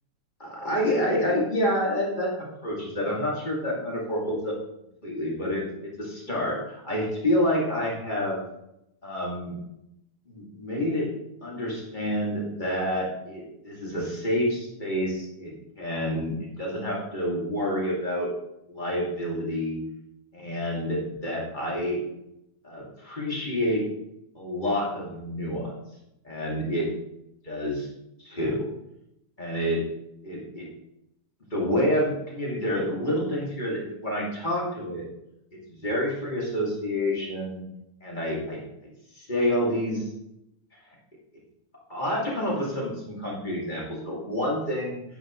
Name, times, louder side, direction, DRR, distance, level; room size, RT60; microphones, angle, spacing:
voice 1, 0.4-2.3 2.6-4.5 5.0-8.4 9.0-9.6 10.3-11.1 11.4-18.3 18.7-19.8 20.3-22.0 22.6-23.8 24.3-25.7 26.2-26.9 27.5-27.9 28.2-28.7 29.4-29.8 30.2-30.7 31.5-35.0 35.7-37.6 38.0-38.9 39.2-40.1 41.9-45.0, equal, 15° left, -4 dB, 2.1 m, -28 dB
9.7 x 9.6 x 3.1 m, 0.83 s
omnidirectional pair, 3.3 m